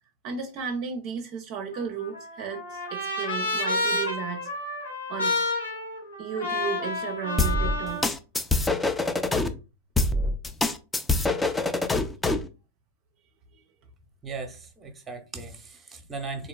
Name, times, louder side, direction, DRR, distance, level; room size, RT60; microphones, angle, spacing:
voice 1, 0.2-4.5 5.1-5.3 6.2-8.0 13.5-13.6, right 6 dB, 45° right, 0.5 m, -34 dB
Trumpet, 1.7-8.1, left 2 dB, 75° left, 1.9 m, -30 dB
sound 1, 7.4-9.5 10.0-12.5, left 2 dB, 10° left, 0.4 m, -24 dB
voice 2, 14.2-16.5, right 4 dB, 15° right, 0.8 m, -37 dB
3.7 x 2.8 x 2.2 m
figure-of-eight pair, 90°, 0 cm